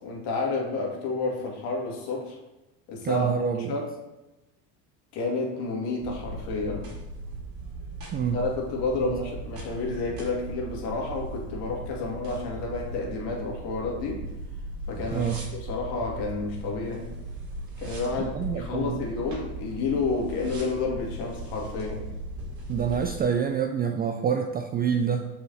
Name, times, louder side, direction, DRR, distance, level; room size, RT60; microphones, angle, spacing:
voice 1, 0.0-2.4 2.9-3.3 3.7-3.9 5.1-6.9 8.3-14.2 14.9-15.3 15.6-17.1 17.8-22.1, left 3 dB, 55° left, -1 dB, 2.3 m, -30 dB
voice 2, 3.0-3.7 8.1-8.4 9.0-9.3 15.1-15.4 18.2-19.0 22.7-25.3, right 7 dB, 20° right, 5 dB, 0.3 m, -27 dB
sound 1, 6.0-23.2, right 2 dB, 45° right, 2.4 m, -38 dB
6.2 x 5.0 x 4.0 m, 0.99 s
hypercardioid pair, 90°, 47 cm